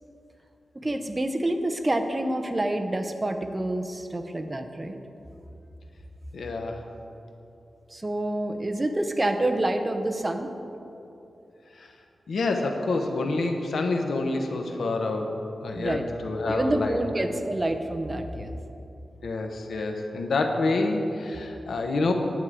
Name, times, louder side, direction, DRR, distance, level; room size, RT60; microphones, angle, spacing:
voice 1, 0.7-5.0 7.9-10.5 15.7-16.0 16.5-18.5, right 1 dB, 20° right, 5 dB, 0.6 m, -27 dB
voice 2, 6.3-6.8 11.8-11.9 12.3-15.4 15.6-17.0 19.2-22.1, left 3 dB, 80° left, 4 dB, 0.9 m, -27 dB
10.5 x 7.4 x 4.9 m, 2.8 s
wide cardioid pair, 140°, 0 cm